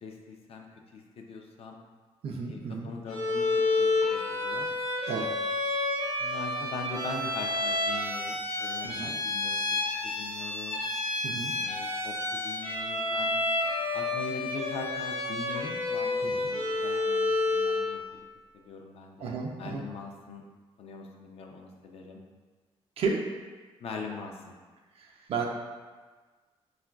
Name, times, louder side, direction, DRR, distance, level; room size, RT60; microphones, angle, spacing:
voice 1, 0.0-0.7 0.9-1.8 2.5-3.4 3.8-4.7 6.2-9.8 10.0-10.8 11.5-13.4 13.9-18.0 18.5-20.4 20.8-22.2 23.8-24.5, left 4 dB, 65° left, 2 dB, 0.4 m, -41 dB
voice 2, 2.2-2.9 5.1-5.3 8.8-9.1 11.2-11.5 16.2-16.5 19.2-19.8 23.0-23.2 25.0-25.5, right 4 dB, 65° right, 1 dB, 0.3 m, -33 dB
Bowed string instrument, 3.1-17.9, left 2 dB, 85° left, 0.7 m, -30 dB
3.7 x 2.4 x 2.2 m, 1.4 s
cardioid pair, 100°, 11 cm